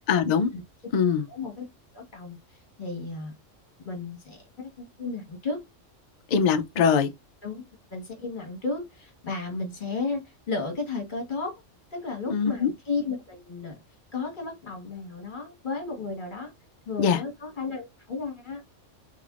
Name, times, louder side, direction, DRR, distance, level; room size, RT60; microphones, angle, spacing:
voice 1, 0.1-0.5 0.9-1.3 6.3-7.1 12.3-12.7 17.0-17.2, left 6 dB, 60° left, 0.4 m, -22 dB
voice 2, 1.3-1.6 1.9-2.4 2.8-3.3 3.8-5.6 7.4-10.2 10.5-11.6 11.9-13.8 14.1-16.5 16.9-18.8, left 4 dB, 40° left, 1.4 m, -33 dB
3.5 x 3.3 x 2.4 m
omnidirectional pair, 1.3 m